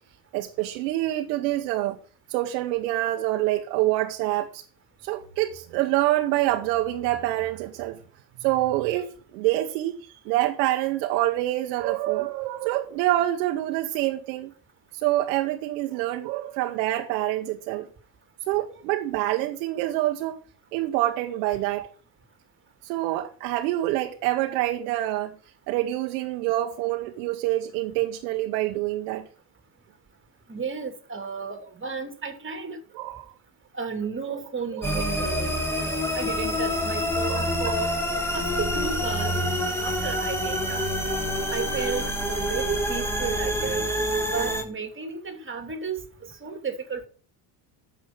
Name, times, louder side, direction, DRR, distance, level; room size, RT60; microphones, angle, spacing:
voice 1, 0.3-2.0 2.3-4.6 5.0-8.0 8.4-14.5 14.9-17.9 18.5-20.4 20.7-21.9 22.8-25.3 25.7-29.3 32.9-33.3 34.3-34.4 34.7-35.3 37.3-37.7, right 15 dB, 90° right, 1.2 m, -26 dB
voice 2, 30.5-32.8 33.7-37.9 38.3-39.4 39.8-40.8 41.5-43.9 44.3-47.1, right 5 dB, 25° right, 2.9 m, -33 dB
sound 1, 34.8-44.6, equal, 5° left, 3.8 m, -27 dB
11.5 x 7.4 x 6.1 m
supercardioid pair, 90°, 50 cm